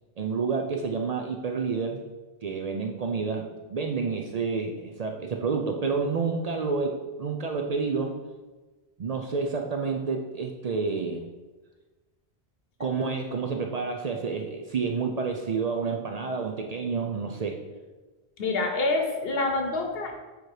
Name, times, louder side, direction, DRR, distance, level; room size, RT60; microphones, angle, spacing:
voice 1, 0.2-2.0 2.4-8.1 9.0-11.2 12.8-17.6, right 4 dB, 55° right, 3 dB, 0.4 m, -29 dB
voice 2, 18.4-20.1, left 2 dB, 65° left, 4 dB, 1.1 m, -26 dB
7.0 x 3.0 x 4.7 m, 1.2 s
omnidirectional pair, 1.1 m